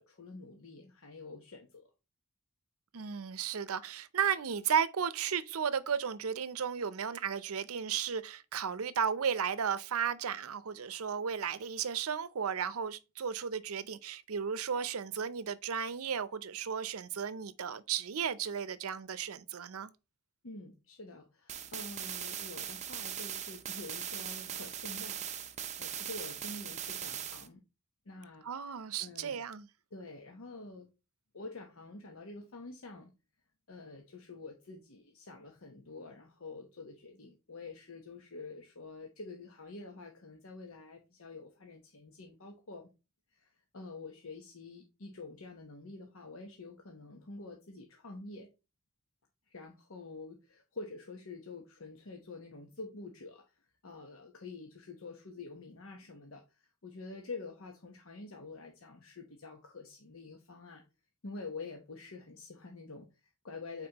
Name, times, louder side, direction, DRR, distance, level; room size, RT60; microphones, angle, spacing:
voice 1, 0.0-1.9 20.4-25.3 25.8-27.6 28.1-29.4 29.9-30.9 31.3-33.1 33.7-42.9 43.3-48.5 49.5-53.4 53.8-60.8 61.2-63.9, left 3 dB, 70° left, 1.0 m, -47 dB
voice 2, 2.9-19.9 28.4-29.7, right 7 dB, 80° right, 0.6 m, -34 dB
sound 1, 21.5-27.5, right 9 dB, 30° right, 0.6 m, -40 dB
8.7 x 4.3 x 2.9 m
head